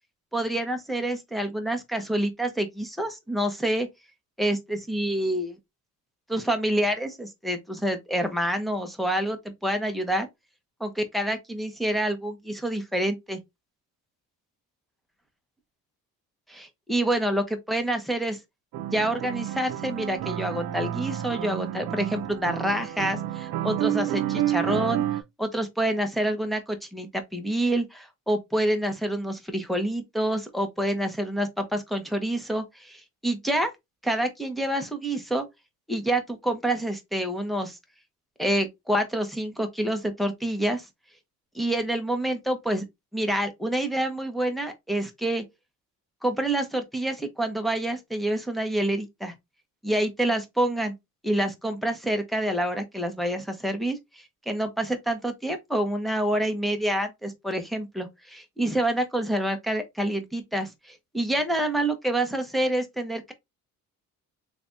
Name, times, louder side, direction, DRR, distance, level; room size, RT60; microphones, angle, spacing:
voice 1, 0.3-3.9 4.4-5.6 6.3-10.3 10.8-13.4 16.5-18.4 18.9-25.0 25.4-33.7 34.0-35.5 35.9-37.8 38.4-40.9 41.5-42.8 43.1-45.4 46.2-49.3 49.8-50.9 51.2-63.3, right 1 dB, ahead, 0.8 m, -27 dB
sound 1, 18.7-25.2, right 12 dB, 90° right, 0.6 m, -30 dB
3.3 x 3.2 x 2.6 m
cardioid pair, 110°, 35 cm